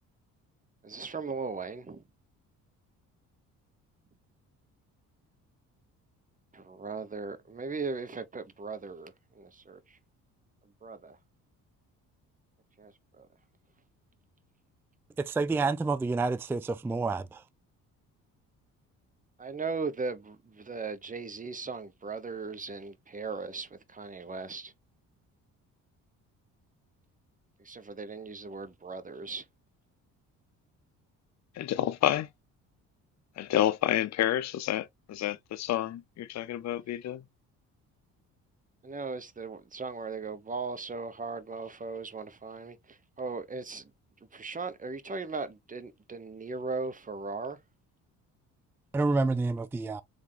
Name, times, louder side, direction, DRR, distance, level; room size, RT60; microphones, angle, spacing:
voice 1, 0.8-2.1 6.5-10.0 10.6-11.2 12.8-13.3 19.4-24.7 27.6-29.4 38.8-43.9 44.3-47.6, right 4 dB, 25° right, 1.0 m, -38 dB
voice 2, 15.3-17.2 48.9-50.0, right 3 dB, 5° right, 0.3 m, -28 dB
voice 3, 31.6-32.3 33.4-37.2, left 12 dB, 50° left, 0.6 m, -29 dB
3.6 x 3.6 x 3.3 m
supercardioid pair, 75°, 34 cm